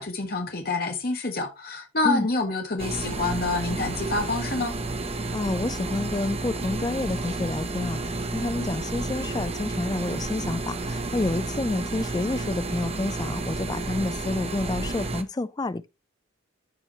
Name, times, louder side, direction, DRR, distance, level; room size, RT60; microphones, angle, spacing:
voice 1, 0.0-4.7, left 3 dB, 50° left, 1.6 m, -27 dB
sound 1, 2.8-15.2, right 2 dB, 30° right, 0.8 m, -31 dB
voice 2, 5.3-15.9, left 2 dB, 20° left, 0.3 m, -29 dB
14.0 x 4.8 x 3.0 m
head